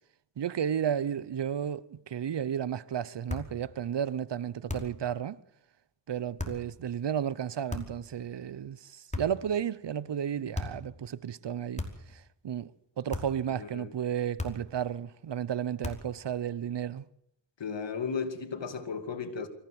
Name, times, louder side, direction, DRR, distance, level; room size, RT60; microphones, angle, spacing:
voice 1, 0.4-5.4 6.1-11.8 12.1-12.7 13.0-17.0, right 9 dB, 70° right, 0.9 m, -33 dB
sound 1, 3.3-3.6 4.7-5.1 6.4-6.7 7.7-8.1 9.1-9.5 10.5-10.9 11.8-12.2 13.1-13.5 14.4-14.8 15.8-16.2, left 2 dB, 15° left, 5.2 m, -37 dB
voice 2, 17.6-19.5, left 5 dB, 75° left, 2.7 m, -35 dB
24.0 x 15.5 x 7.9 m
cardioid pair, 50°, 44 cm